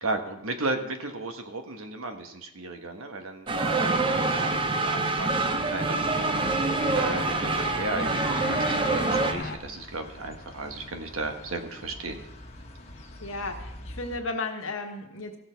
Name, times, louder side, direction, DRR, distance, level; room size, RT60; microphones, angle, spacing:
voice 1, 0.0-5.4 5.7-6.5 6.9-12.2, right 2 dB, 85° right, 5 dB, 1.2 m, -34 dB
sound 1, 3.5-9.6, left 3 dB, 50° left, 0.9 m, -38 dB
sound 2, 3.5-9.3, right 3 dB, 25° right, 0.5 m, -26 dB
sound 3, 5.1-14.2, left 1 dB, 30° left, 1.3 m, -46 dB
voice 2, 13.2-15.4, left 3 dB, 70° left, 3 dB, 1.3 m, -34 dB
15.5 x 6.5 x 4.5 m, 0.84 s
head